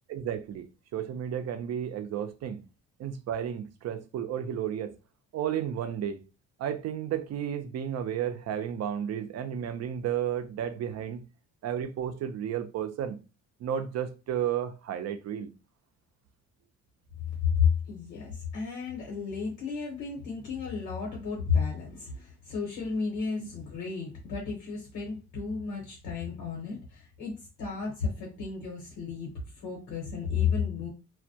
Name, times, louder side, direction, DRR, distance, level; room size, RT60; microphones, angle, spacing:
voice 1, 0.1-0.7 0.9-2.6 3.0-4.9 5.3-6.2 6.6-11.2 11.6-13.2 13.6-15.5, right 9 dB, 60° right, 0.5 m, -32 dB
voice 2, 17.4-30.9, left 6 dB, 85° left, 1.0 m, -32 dB
2.2 x 2.1 x 2.7 m
cardioid pair, 90°, 30 cm